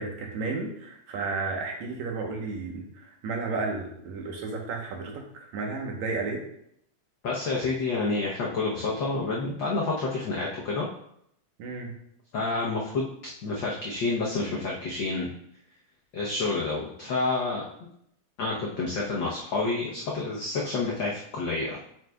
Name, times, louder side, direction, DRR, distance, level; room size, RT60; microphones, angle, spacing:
voice 1, 0.0-6.4 11.6-11.9, right 3 dB, 70° right, 1 dB, 2.3 m, -33 dB
voice 2, 7.2-10.9 12.3-15.3 16.1-17.7 18.4-21.8, left 3 dB, 75° left, -4 dB, 1.0 m, -29 dB
7.7 x 5.9 x 2.3 m, 0.72 s
omnidirectional pair, 3.4 m